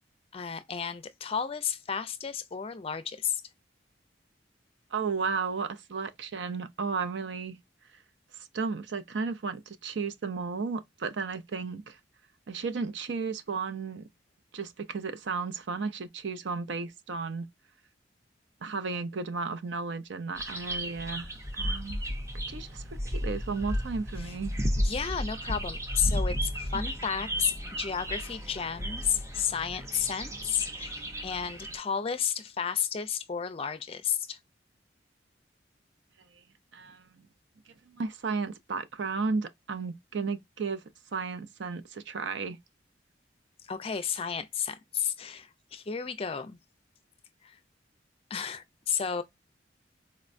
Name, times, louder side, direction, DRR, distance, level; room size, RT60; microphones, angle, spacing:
voice 1, 0.3-3.4 24.2-24.3 24.8-31.0 31.2-34.4 43.7-46.6 47.4-47.6 48.3-49.2, left 7 dB, 30° left, 0.4 m, -32 dB
voice 2, 4.9-7.6 8.3-12.0 12.5-14.1 14.5-17.5 18.6-21.3 21.5-22.0 22.3-24.6 26.7-26.8 36.7-37.1 37.7-40.8 41.1-42.6, right 4 dB, 75° right, 0.5 m, -34 dB
sound 1, 20.3-31.8, equal, 15° right, 0.6 m, -33 dB
4.2 x 2.1 x 2.5 m
head